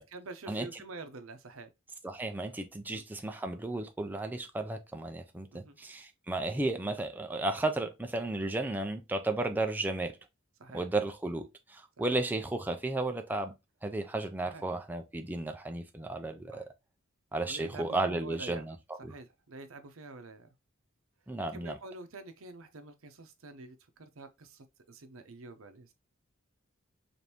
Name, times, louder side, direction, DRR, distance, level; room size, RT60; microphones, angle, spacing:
voice 1, 0.0-1.7 2.9-3.0 5.5-5.8 10.6-10.9 12.0-12.1 14.4-14.6 16.5-16.7 17.5-18.6 19.0-20.5 21.5-25.9, right 3 dB, 70° right, 0.8 m, -47 dB
voice 2, 2.0-10.2 10.7-13.5 13.8-16.6 17.3-18.7 19.0-19.1 21.3-21.8, right 2 dB, 10° right, 0.4 m, -34 dB
5.1 x 2.6 x 2.9 m
head